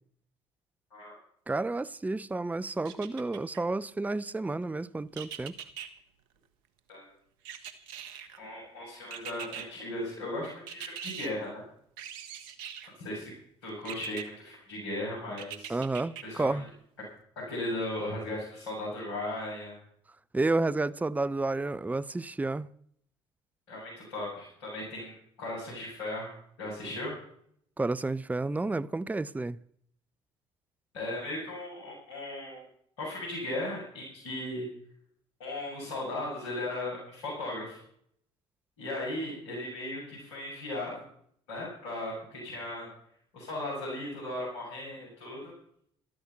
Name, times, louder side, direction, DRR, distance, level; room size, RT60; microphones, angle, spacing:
voice 1, 1.5-5.5 15.7-16.7 20.3-22.7 27.8-29.6, right 2 dB, 10° right, 0.6 m, -31 dB
sound 1, 2.8-3.6 5.1-5.9 7.4-8.4 9.1-9.7 10.7-11.3 12.0-12.9 13.8-14.2 15.4-16.2 16.7-16.8, right 9 dB, 75° right, 1.5 m, -41 dB
voice 2, 8.3-11.6 13.0-13.3 13.6-15.8 16.2-16.6 17.5-19.8 23.7-25.1 25.4-26.3 26.6-27.1 30.9-32.6 33.0-34.6 35.4-37.8 38.8-41.0 41.5-42.9 43.3-45.5, left 1 dB, 80° left, 7.7 m, -37 dB
14.0 x 13.5 x 5.9 m
hypercardioid pair, 55°, 14 cm